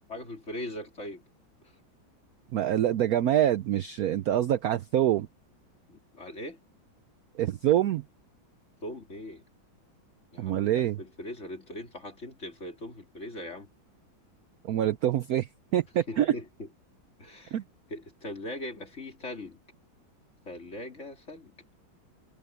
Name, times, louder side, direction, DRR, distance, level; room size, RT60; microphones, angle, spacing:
voice 1, 0.1-1.2 5.9-6.6 8.8-9.4 10.3-13.7 16.1-16.7 17.2-17.6 17.9-19.6 20.5-21.6, left 1 dB, 35° left, 3.8 m, -40 dB
voice 2, 2.5-5.3 7.4-8.0 10.4-11.0 14.6-16.3 17.5-17.6, right 11 dB, 70° right, 0.8 m, -25 dB
omnidirectional pair, 2.2 m